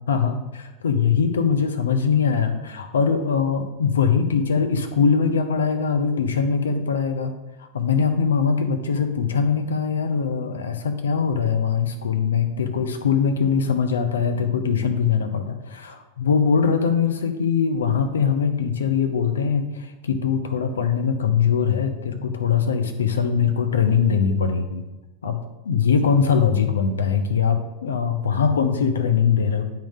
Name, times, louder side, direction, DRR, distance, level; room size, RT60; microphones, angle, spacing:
voice 1, 0.1-7.3 7.6-24.8 25.2-25.4 25.6-29.6, left 6 dB, 65° left, 6 dB, 0.7 m, -22 dB
8.8 x 3.8 x 3.7 m, 1.1 s
figure-of-eight pair, 90°, 0 cm